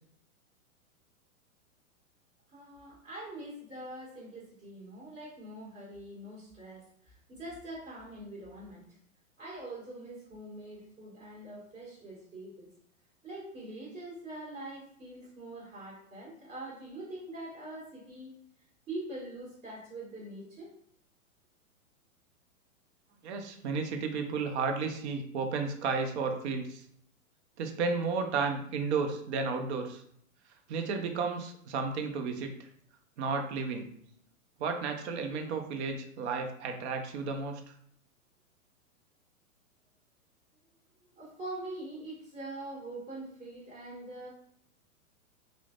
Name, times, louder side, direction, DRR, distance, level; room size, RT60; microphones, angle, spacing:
voice 1, 2.5-9.0 9.4-12.7 13.2-18.3 18.9-20.7 41.0-44.3, right 1 dB, 25° right, -5 dB, 1.5 m, -44 dB
voice 2, 23.2-26.8 27.6-30.0 30.7-32.5 33.2-33.9 34.6-37.6, right 4 dB, 55° right, 5 dB, 0.5 m, -33 dB
3.1 x 2.0 x 2.4 m, 0.66 s
hypercardioid pair, 125°, 43 cm